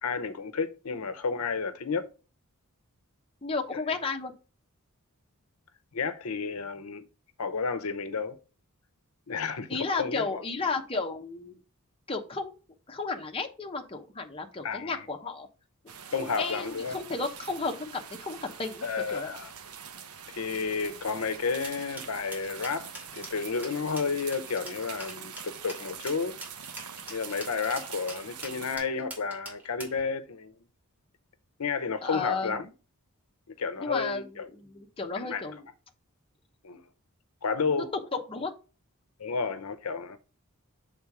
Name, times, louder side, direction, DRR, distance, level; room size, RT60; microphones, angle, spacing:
voice 1, 0.0-2.1 3.7-3.8 5.9-7.1 7.4-8.4 9.3-10.4 14.6-15.0 16.1-17.0 18.8-19.5 20.3-26.3 27.1-30.5 31.6-32.7 33.5-34.5 35.1-35.4 36.6-36.8 37.4-37.9 39.2-40.2, left 5 dB, 75° left, 0.7 m, -31 dB
voice 2, 3.4-4.3 9.7-11.6 12.1-12.5 12.9-15.5 16.3-19.3 32.0-32.6 33.8-35.6 37.7-37.9 38.1-38.5, left 3 dB, 25° left, 0.9 m, -33 dB
sound 1, 15.9-28.8, right 7 dB, 80° right, 0.9 m, -44 dB
sound 2, 21.6-30.0, right 1 dB, 5° right, 2.5 m, -43 dB
7.0 x 3.7 x 4.8 m
head